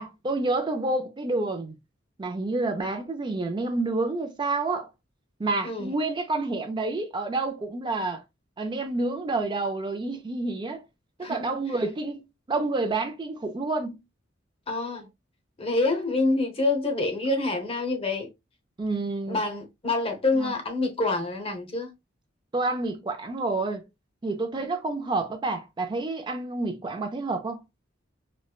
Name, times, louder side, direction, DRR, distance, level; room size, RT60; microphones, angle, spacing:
voice 1, 0.0-1.7 2.2-4.9 5.4-8.2 8.6-10.8 11.2-14.0 18.8-19.4 20.4-20.5 22.5-23.8 24.2-27.6, right 2 dB, 25° right, 0.4 m, -29 dB
voice 2, 14.7-15.1 15.6-18.3 19.3-21.9, left 2 dB, 30° left, 0.8 m, -26 dB
4.2 x 2.1 x 2.3 m
head